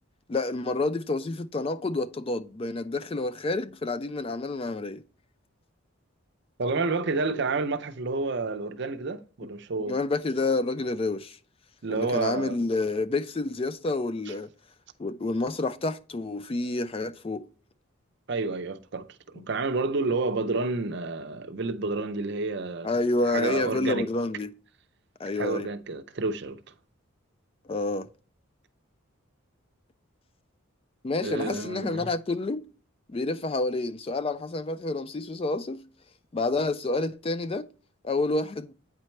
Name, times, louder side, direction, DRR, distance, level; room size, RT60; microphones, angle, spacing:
voice 1, 0.3-5.0 9.9-11.4 11.9-14.5 15.0-17.5 19.4-19.5 22.8-24.5 25.2-25.7 27.7-28.1 31.0-32.6 33.1-35.8 36.3-37.7 38.0-38.7, left 2 dB, 25° left, 0.3 m, -29 dB
voice 2, 6.6-10.0 11.8-12.6 14.3-14.4 18.3-19.1 19.3-22.9 23.3-24.1 25.3-26.6 31.2-32.1, right 3 dB, 55° right, 0.5 m, -29 dB
9.0 x 4.4 x 3.1 m
head